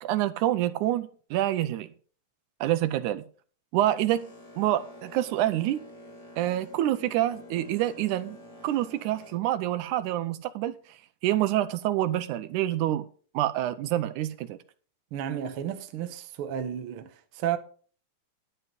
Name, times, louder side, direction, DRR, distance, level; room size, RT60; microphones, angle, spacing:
voice 1, 0.0-1.9 2.6-3.2 3.7-5.8 6.4-8.4 8.6-11.0 11.2-13.1 13.3-14.6, right 13 dB, 80° right, 2.1 m, -27 dB
Boat Water vehicle, 4.1-9.4, left 1 dB, 55° left, 7.5 m, -48 dB
voice 2, 15.1-17.6, right 10 dB, 60° right, 1.5 m, -32 dB
11.0 x 7.7 x 5.3 m
omnidirectional pair, 3.6 m